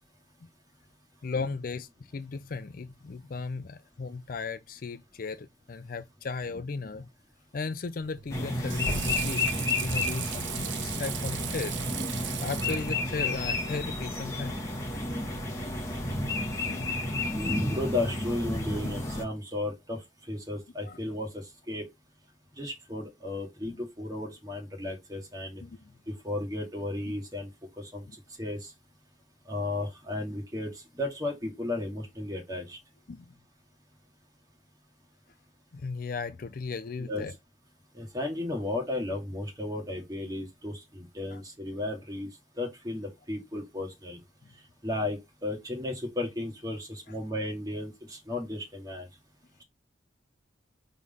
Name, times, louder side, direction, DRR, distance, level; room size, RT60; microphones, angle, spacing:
voice 1, 1.2-7.1 7.5-11.8 12.1-14.6 16.5-17.2 18.8-18.9 20.8-21.0 23.7-23.8 25.6-25.9 28.1-28.2 33.1-33.3 35.7-37.4 41.3-41.4 47.1-47.2, left 4 dB, 45° left, 0.4 m, -36 dB
Water / Sink (filling or washing), 8.0-13.5, right 12 dB, 70° right, 0.5 m, -38 dB
sound 1, 8.3-19.2, left 2 dB, 15° left, 1.4 m, -31 dB
voice 2, 17.3-20.0 20.3-21.9 22.6-25.6 26.1-27.5 27.8-28.0 28.4-28.7 29.5-32.8 37.0-37.2 37.9-42.3 42.6-44.2 44.8-49.1, left 2 dB, 20° right, 2.0 m, -34 dB
4.9 x 3.7 x 5.4 m
head